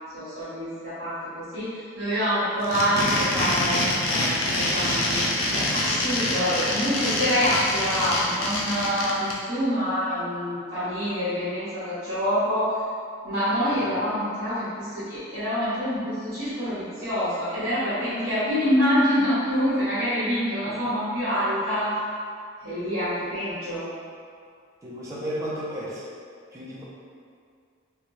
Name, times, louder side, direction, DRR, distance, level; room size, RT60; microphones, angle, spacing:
voice 1, 0.1-3.8 4.1-12.8 13.2-21.9 22.6-23.9, equal, 55° right, -14 dB, 1.0 m, -26 dB
sound 1, 2.6-9.3, left 1 dB, 75° left, 0.5 m, -25 dB
voice 2, 24.8-26.1 26.5-26.8, equal, 15° right, -7 dB, 0.3 m, -33 dB
2.5 x 2.2 x 3.1 m, 2.3 s
head